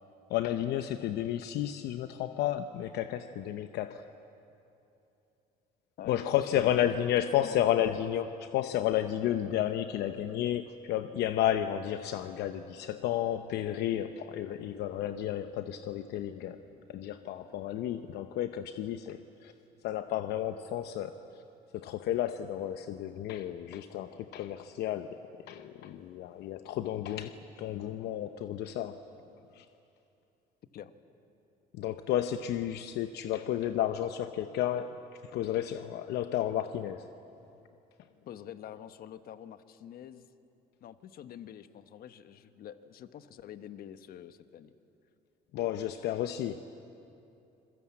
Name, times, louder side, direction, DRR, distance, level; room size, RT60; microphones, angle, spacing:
voice 1, 0.3-4.1 6.1-19.5 19.8-21.2 21.7-25.2 25.5-29.0 29.5-29.7 31.7-35.0 35.3-37.1 45.5-46.6, left 11 dB, 80° left, 9 dB, 0.8 m, -32 dB
voice 2, 6.5-6.9 7.4-7.7 30.7-30.9 38.3-40.3 40.8-44.7, left 10 dB, 60° left, 11 dB, 1.2 m, -46 dB
27.0 x 21.5 x 8.5 m, 2.8 s
cardioid pair, 110°, 17 cm